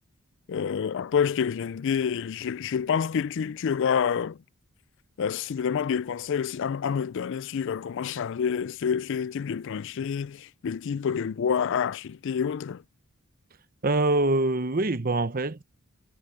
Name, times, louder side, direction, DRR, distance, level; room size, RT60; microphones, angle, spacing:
voice 1, 0.5-4.4 5.2-12.8, left 7 dB, 55° left, 0.3 m, -28 dB
voice 2, 13.8-15.6, right 2 dB, 40° right, 0.9 m, -24 dB
head